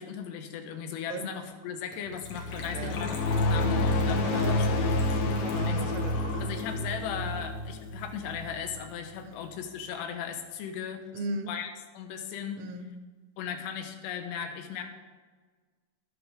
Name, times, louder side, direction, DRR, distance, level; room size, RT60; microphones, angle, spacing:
voice 1, 0.0-4.7 5.5-5.8 6.4-11.0 11.5-12.6 13.4-14.8, left 7 dB, 90° left, 6 dB, 3.1 m, -37 dB
Gurgling / Trickle dribble / Fill (with liquid), 1.9-8.2 8.4-8.5 8.7-8.9 9.2-9.3, left 2 dB, 55° left, 1.7 m, -44 dB
sound 1, 2.2-8.8, left 2 dB, 70° left, 2.6 m, -29 dB
voice 2, 4.2-4.6 5.4-6.4 9.2-9.4 11.1-11.5 12.6-12.9, right 3 dB, 75° right, 7 dB, 2.5 m, -36 dB
19.0 x 6.4 x 3.5 m, 1.4 s
omnidirectional pair, 4.9 m